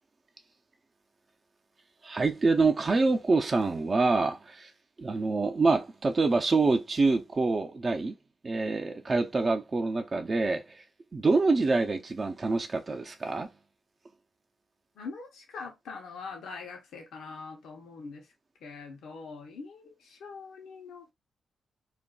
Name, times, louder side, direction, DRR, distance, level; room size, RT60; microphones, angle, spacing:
voice 1, 2.0-4.7 5.0-8.1 8.4-10.8 11.1-13.5, right 3 dB, 40° right, 0.7 m, -26 dB
voice 2, 15.0-18.3 18.6-21.1, left 4 dB, 85° left, 0.8 m, -43 dB
2.5 x 2.2 x 3.9 m
cardioid pair, 60°, 0 cm